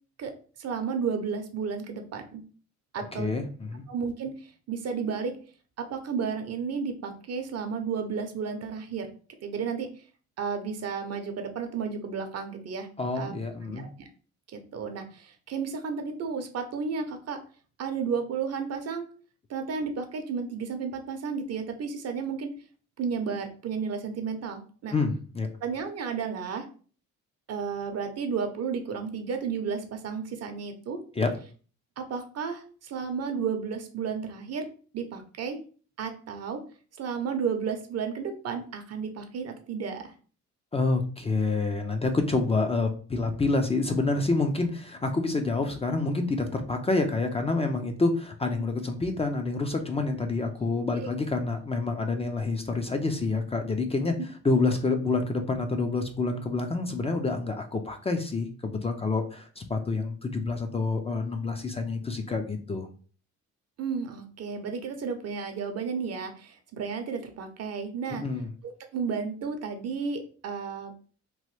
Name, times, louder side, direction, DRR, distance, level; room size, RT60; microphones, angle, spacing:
voice 1, 0.6-2.4 2.9-3.3 3.9-5.4 5.8-9.1 9.4-9.9 10.4-12.9 13.2-13.3 13.7-14.1 14.5-17.4 17.8-19.1 19.5-22.5 23.0-25.0 25.6-26.7 27.5-31.0 32.0-34.7 34.9-35.6 36.0-36.6 37.0-40.1 51.0-51.1 63.8-68.2 68.6-70.9, right 6 dB, 55° right, 6 dB, 0.7 m, -32 dB
voice 2, 3.0-3.8 13.0-13.9 24.9-25.5 31.1-31.3 40.7-54.1 54.4-62.9 68.2-68.5, left 3 dB, 20° left, 5 dB, 0.4 m, -28 dB
3.0 x 2.2 x 3.1 m, 0.40 s
cardioid pair, 90°, 30 cm